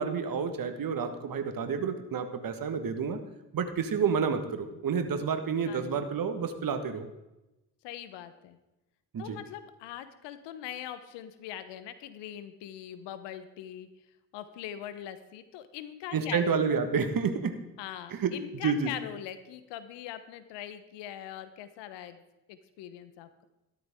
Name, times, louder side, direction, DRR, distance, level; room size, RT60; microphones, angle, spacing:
voice 1, 0.0-3.2 3.5-7.1 9.1-9.4 16.1-17.6 18.1-18.9, right 6 dB, 50° right, 7 dB, 1.6 m, -29 dB
voice 2, 5.7-6.1 7.8-8.6 9.2-13.9 14.3-16.7 17.8-22.2 22.5-23.5, left 11 dB, 75° left, 11 dB, 1.1 m, -42 dB
14.0 x 12.5 x 3.7 m, 0.97 s
hypercardioid pair, 45°, 43 cm